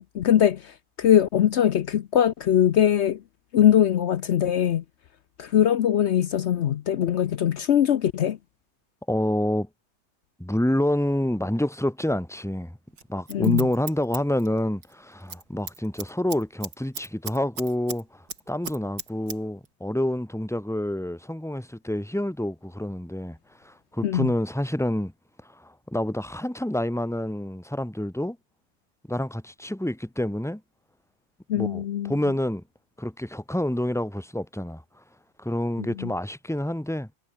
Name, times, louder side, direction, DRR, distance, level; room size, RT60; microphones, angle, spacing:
voice 1, 0.0-3.2 3.5-4.8 5.4-8.4 13.3-13.7 24.0-24.3 31.5-32.1 35.8-36.1, left 10 dB, 70° left, 0.6 m, -22 dB
voice 2, 9.1-9.7 10.4-12.8 13.1-25.1 25.4-28.4 29.1-30.6 31.5-32.6 33.0-35.0 35.4-37.1, left 1 dB, ahead, 1.4 m, -28 dB
Scissors, 13.0-14.9 15.2-15.4 15.7-18.0 18.3-19.4 19.7-19.8, right 5 dB, 80° right, 3.8 m, -36 dB
omnidirectional pair, 1.9 m